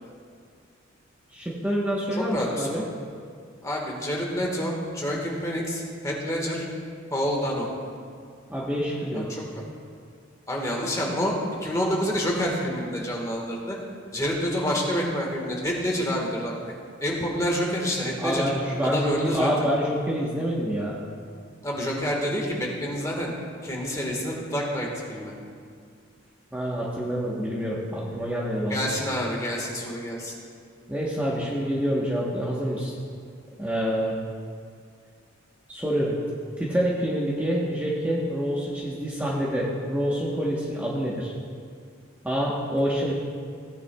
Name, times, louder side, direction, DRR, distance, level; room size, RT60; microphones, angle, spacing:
voice 1, 1.3-2.8 8.5-9.3 18.2-21.0 26.5-28.9 30.9-32.9 33.6-34.1 35.7-36.2 36.6-41.3 42.2-43.1, equal, 10° right, -6 dB, 1.0 m, -27 dB
voice 2, 2.1-2.8 3.6-6.7 7.1-7.7 9.1-9.6 10.5-11.3 11.6-13.8 14.1-16.7 17.0-18.4 18.8-19.7 21.6-23.3 23.6-25.3 28.7-30.3, equal, 15° left, -2 dB, 1.4 m, -28 dB
16.5 x 9.3 x 2.3 m, 2.1 s
head